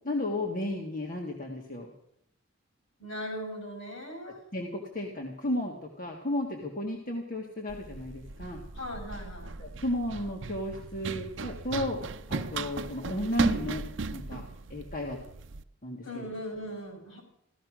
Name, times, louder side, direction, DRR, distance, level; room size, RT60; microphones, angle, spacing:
voice 1, 0.0-1.9 4.2-8.6 9.6-13.9 14.1-14.5 14.7-15.2 15.8-16.3, left 1 dB, 40° left, 0 dB, 1.8 m, -34 dB
voice 2, 3.0-4.4 8.7-9.6 16.0-17.2, equal, 70° left, 3 dB, 6.3 m, -39 dB
Run, 7.7-15.6, right 3 dB, 60° right, 0.6 m, -36 dB
16.0 x 13.5 x 6.2 m, 0.77 s
head